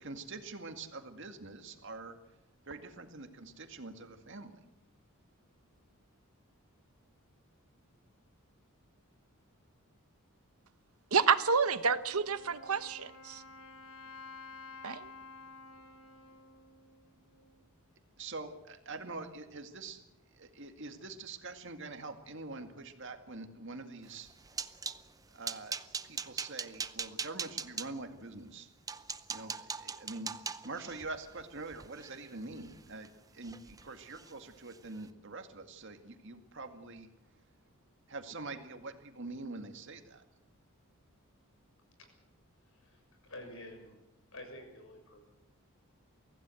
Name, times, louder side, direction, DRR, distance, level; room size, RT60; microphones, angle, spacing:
voice 1, 0.0-2.2 2.7-4.5 18.2-20.0 20.3-24.3 25.3-25.8 26.0-28.7 29.3-30.3 30.6-37.1 38.1-40.2, right 3 dB, 55° right, 6 dB, 2.1 m, -45 dB
voice 2, 11.1-13.4 14.8-15.1, right 5 dB, 75° right, 12 dB, 1.1 m, -29 dB
Wind instrument woodwind instrument, 12.0-17.7, left 4 dB, 85° left, 2.8 m, -52 dB
sound 1, 24.1-25.0 25.4-27.9 28.5-28.6 28.9-33.1 33.4-33.8 34.1-34.3 34.7-34.9, right 5 dB, 15° right, 0.6 m, -41 dB
voice 3, 42.6-44.0 44.3-45.2, left 1 dB, 65° left, 4 dB, 6.8 m, -49 dB
24.0 x 16.0 x 7.8 m, 0.95 s
head